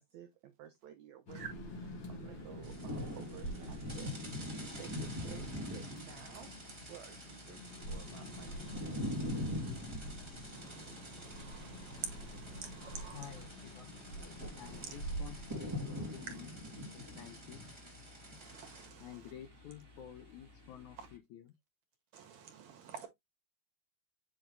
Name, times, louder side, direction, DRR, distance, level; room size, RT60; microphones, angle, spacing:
voice 1, 0.0-1.7 2.1-8.9, right 10 dB, 75° right, 1.7 m, -53 dB
sound 1, 1.3-16.6, equal, 40° left, 2.1 m, -47 dB
sound 2, 2.3-21.2, left 1 dB, 10° right, 1.3 m, -45 dB
sound 3, 2.6-18.9, right 1 dB, 30° right, 0.5 m, -54 dB
voice 2, 10.5-13.4 14.6-15.0 16.3-16.5 18.4-19.3 21.0-21.1 22.1-23.1, right 7 dB, 60° right, 2.7 m, -48 dB
voice 3, 13.1-14.0 14.5-16.5 16.8-17.6 19.0-21.4, left 11 dB, 75° left, 1.8 m, -51 dB
7.8 x 3.5 x 3.9 m
omnidirectional pair, 4.0 m